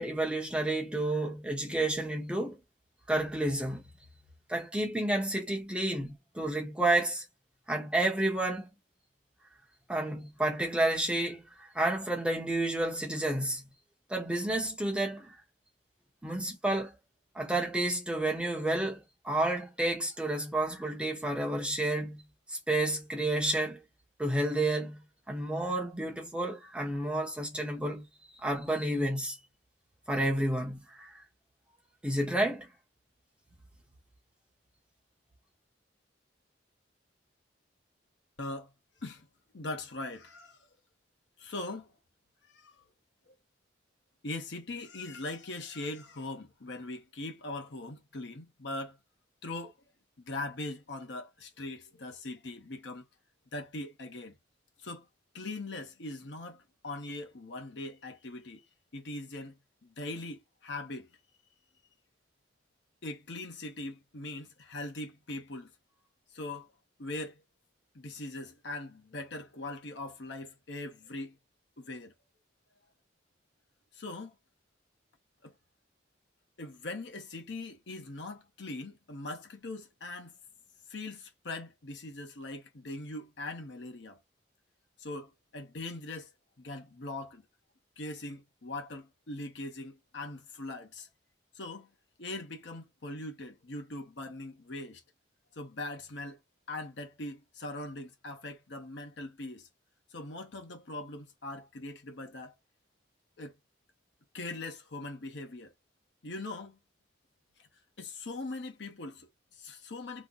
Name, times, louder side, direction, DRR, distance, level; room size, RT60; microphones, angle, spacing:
voice 1, 0.0-2.6 3.1-3.8 4.5-7.2 7.7-8.7 9.9-13.6 14.1-15.4 16.2-17.0 17.3-22.2 22.5-23.8 24.2-25.0 25.3-28.1 28.3-29.4 30.1-31.1 32.0-32.7, right 1 dB, 5° right, 0.8 m, -30 dB
voice 2, 38.4-38.7 39.0-39.3 39.5-40.6 41.4-41.9 42.4-42.8 43.3-43.4 44.2-49.0 49.4-49.7 50.2-53.0 53.5-54.4 54.8-55.1 55.3-58.7 58.9-61.1 63.0-65.7 66.3-66.7 67.0-67.4 67.9-71.4 71.8-72.1 73.9-74.4 75.4-75.5 76.6-80.3 80.9-84.2 85.0-86.3 86.6-87.4 88.0-91.1 91.5-91.9 92.2-95.0 95.5-96.4 96.7-99.7 100.1-102.5 103.4-103.5 104.3-105.7 106.2-106.8 107.6-107.7 108.0-110.3, left 2 dB, 65° left, 0.9 m, -41 dB
2.9 x 2.1 x 3.8 m
head